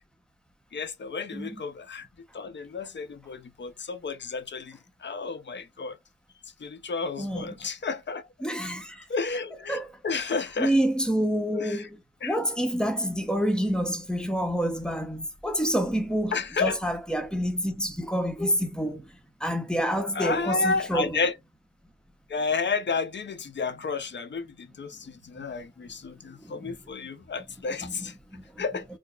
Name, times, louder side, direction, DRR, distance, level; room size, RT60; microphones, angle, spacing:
voice 1, 0.7-2.1 2.3-6.0 6.6-8.2 9.1-10.7 11.5-11.8 12.2-12.4 16.3-16.8 20.1-21.4 22.3-28.1 28.6-28.9, left 4 dB, 60° left, 0.6 m, -31 dB
voice 2, 7.2-7.6 8.4-9.0 9.7-10.3 10.6-19.1 19.4-21.2 26.4-26.8 27.8-28.6, equal, 5° left, 0.8 m, -28 dB
4.7 x 2.0 x 2.4 m
wide cardioid pair, 100°, 21 cm